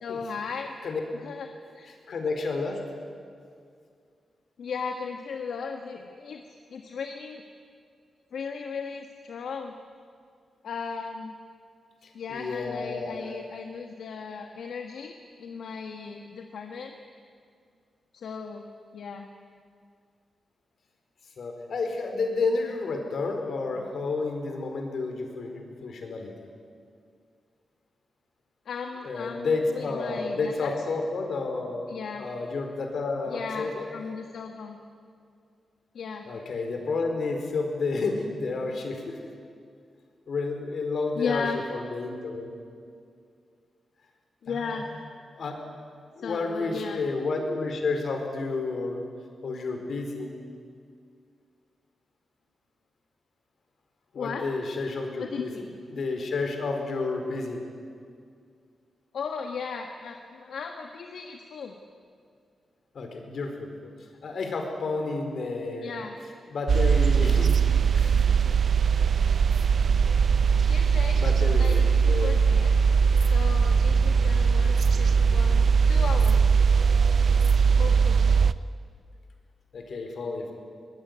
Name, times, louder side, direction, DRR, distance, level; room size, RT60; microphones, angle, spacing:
voice 1, 0.0-0.7 1.1-1.5 1.7-1.9 4.6-6.4 6.7-7.4 8.3-9.7 10.6-11.3 12.1-16.9 18.1-18.6 18.9-19.3 28.6-30.7 31.9-32.2 33.3-34.8 35.9-36.3 41.2-41.6 44.4-44.9 46.2-47.0 54.1-54.5 55.2-55.7 59.1-61.7 65.8-66.2 70.7-72.7 73.3-76.4 77.7-78.3, left 5 dB, 80° left, 4 dB, 1.6 m, -36 dB
voice 2, 2.1-2.8 12.0-13.3 21.4-26.3 29.0-31.9 32.2-33.8 36.3-39.2 40.3-42.5 44.5-44.8 45.3-45.6 46.1-49.0 49.4-50.4 54.1-57.6 62.9-63.9 64.2-66.0 66.5-68.4 71.2-72.4 79.7-80.5, left 3 dB, 65° left, 4 dB, 4.6 m, -31 dB
sound 1, 66.7-78.5, right 6 dB, 55° right, 0.6 m, -20 dB
25.0 x 20.5 x 9.6 m, 2.2 s
wide cardioid pair, 120°, 0 cm